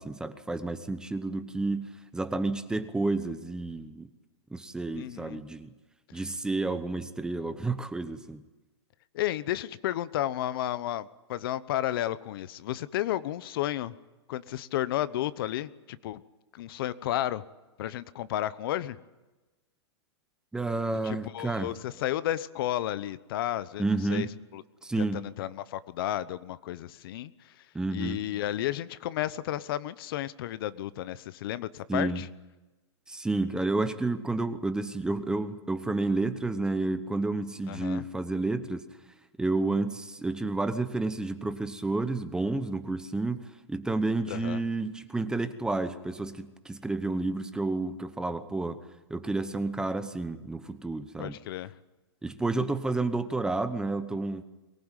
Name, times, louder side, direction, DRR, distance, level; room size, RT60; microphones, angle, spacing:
voice 1, 0.0-4.1 4.5-5.7 6.1-8.4 20.5-21.7 23.8-24.3 24.8-25.2 27.7-28.2 31.9-32.2 33.1-38.8 39.4-43.4 43.7-48.8 49.1-51.3 52.2-54.4, right 2 dB, 5° right, 11 dB, 0.9 m, -30 dB
voice 2, 4.9-5.4 6.1-6.2 9.1-13.9 14.3-16.2 16.5-17.4 17.8-19.0 21.0-24.3 24.5-24.6 25.0-27.7 27.9-32.3 37.7-38.1 44.3-44.6 51.2-51.7, left 13 dB, 55° left, 16 dB, 0.9 m, -32 dB
23.0 x 19.0 x 9.1 m, 1.1 s
hypercardioid pair, 155°, 15 cm